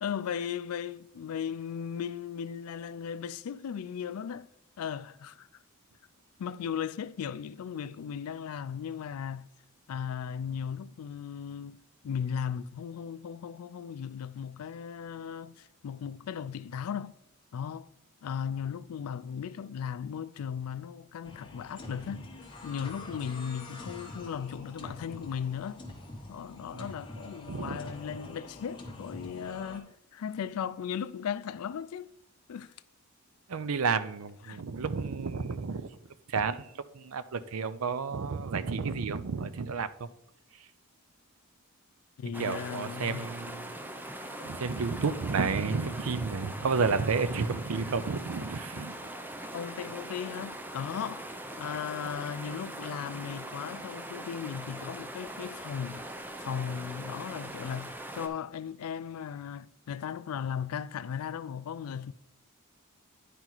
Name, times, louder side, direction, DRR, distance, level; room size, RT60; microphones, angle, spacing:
voice 1, 0.0-4.5 4.8-5.5 6.4-9.5 9.9-11.8 12.0-17.1 17.5-17.9 18.2-22.3 22.6-25.8 26.3-32.1 32.5-32.7 34.5-34.6 42.2-43.3 49.5-51.3 51.6-62.1, left 7 dB, 85° left, 0.3 m, -37 dB
sound 1, 21.2-29.8, left 2 dB, 20° left, 1.1 m, -45 dB
voice 2, 33.5-35.9 36.3-36.7 36.9-40.1 42.4-43.8 44.4-48.9, right 5 dB, 75° right, 0.5 m, -31 dB
sound 2, 42.3-58.3, right 1 dB, 10° right, 0.5 m, -41 dB
9.8 x 4.5 x 3.9 m
head